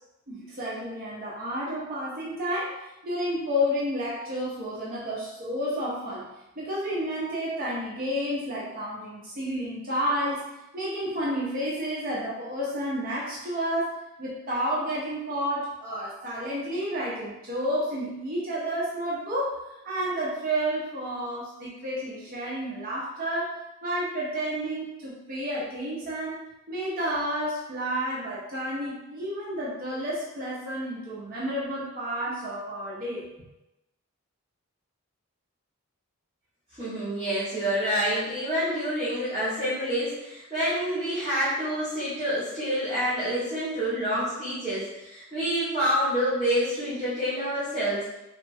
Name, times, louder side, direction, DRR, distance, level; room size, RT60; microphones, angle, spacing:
voice 1, 0.3-2.8 3.0-6.3 6.6-10.4 10.7-19.6 19.8-26.4 26.7-33.3, equal, 40° right, -6 dB, 0.6 m, -30 dB
voice 2, 36.8-48.0, equal, 20° right, -14 dB, 1.1 m, -27 dB
3.0 x 2.2 x 2.6 m, 0.95 s
head